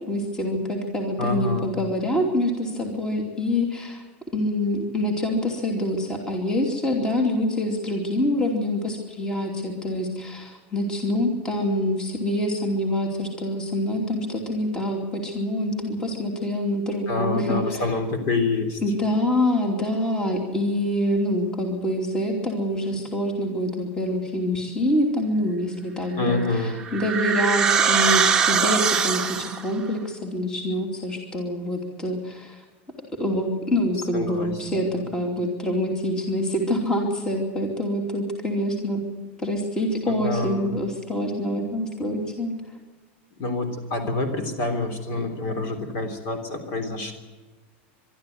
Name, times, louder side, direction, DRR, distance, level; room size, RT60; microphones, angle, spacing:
voice 1, 0.1-4.0 4.3-17.8 18.8-32.6 33.2-39.0 39.4-42.6, left 1 dB, 10° left, 2 dB, 2.9 m, -26 dB
voice 2, 1.2-1.7 17.1-18.8 26.2-26.8 34.1-34.5 40.0-40.7 43.4-47.1, left 3 dB, 40° left, 7 dB, 3.4 m, -27 dB
sound 1, 26.3-29.7, right 6 dB, 10° right, 1.5 m, -22 dB
22.5 x 12.5 x 9.4 m, 1.3 s
supercardioid pair, 165°, 6 cm